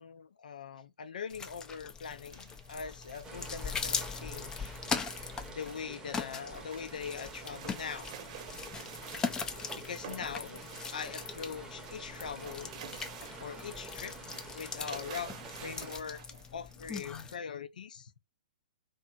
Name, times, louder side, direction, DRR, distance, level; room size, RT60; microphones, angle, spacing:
voice 1, 0.0-5.2 5.5-8.1 9.4-12.7 13.4-14.2 14.5-18.1, left 6 dB, 65° left, 0.5 m, -42 dB
sound 1, 1.3-17.4, left 5 dB, 15° left, 0.4 m, -41 dB
sound 2, 2.3-5.7 6.1-11.5 11.8-13.8 14.1-14.5 14.9-16.7, right 8 dB, 50° right, 0.9 m, -50 dB
sound 3, 3.2-16.0, right 2 dB, 15° right, 0.8 m, -48 dB
2.8 x 2.8 x 2.3 m
figure-of-eight pair, 115°, 5 cm